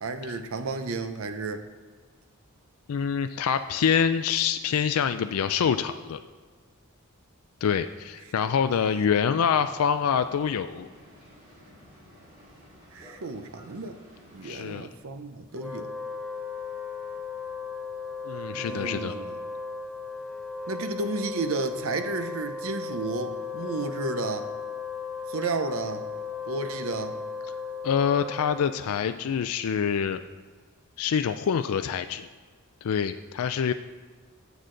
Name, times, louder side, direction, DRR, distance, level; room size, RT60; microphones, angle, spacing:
voice 1, 0.0-1.7 12.9-14.0 14.3-15.9 18.5-19.4 20.7-24.5 25.3-26.0 26.5-27.2, right 3 dB, 65° right, 8 dB, 0.7 m, -32 dB
voice 2, 2.9-6.2 7.6-10.9 14.4-14.9 18.2-19.1 27.8-30.2 31.0-32.3 32.8-33.7, left 7 dB, 75° left, 9 dB, 0.4 m, -26 dB
Boat Water vehicle, 9.3-14.5, equal, 40° right, 2.7 m, -53 dB
Wind instrument woodwind instrument, 15.5-28.9, left 5 dB, ahead, 0.4 m, -36 dB
9.5 x 8.0 x 3.8 m, 1.5 s
head